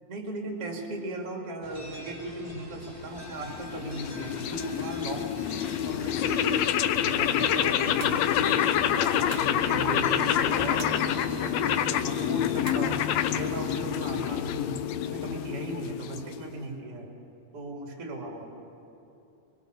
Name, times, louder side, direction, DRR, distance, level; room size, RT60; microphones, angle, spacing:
voice 1, 0.0-5.4 5.8-6.7 7.0-13.0 13.3-17.1 17.5-18.5, right 2 dB, 50° right, 0 dB, 3.5 m, -37 dB
sound 1, 1.6-12.0, equal, 10° left, 5.4 m, -46 dB
sound 2, 3.2-16.6, left 10 dB, 75° left, 1.8 m, -27 dB
sound 3, 6.6-6.8 8.0-8.3 9.3-9.6 10.8-11.1 12.7-12.9, right 8 dB, 70° right, 2.0 m, -43 dB
24.0 x 22.5 x 6.6 m, 2.9 s
omnidirectional pair, 3.4 m